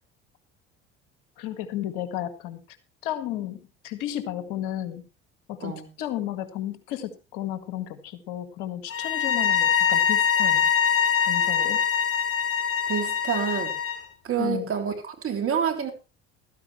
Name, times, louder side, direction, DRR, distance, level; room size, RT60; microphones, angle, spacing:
voice 1, 1.4-2.6 3.0-5.0 5.5-5.7 6.0-10.7 11.2-11.8 14.4-14.7, left 12 dB, 80° left, 1.9 m, -33 dB
sound 1, 8.9-14.0, left 8 dB, 50° left, 3.8 m, -23 dB
voice 2, 12.9-13.8 14.2-15.9, right 7 dB, 50° right, 3.5 m, -28 dB
15.0 x 13.5 x 3.2 m
hypercardioid pair, 70°, 29 cm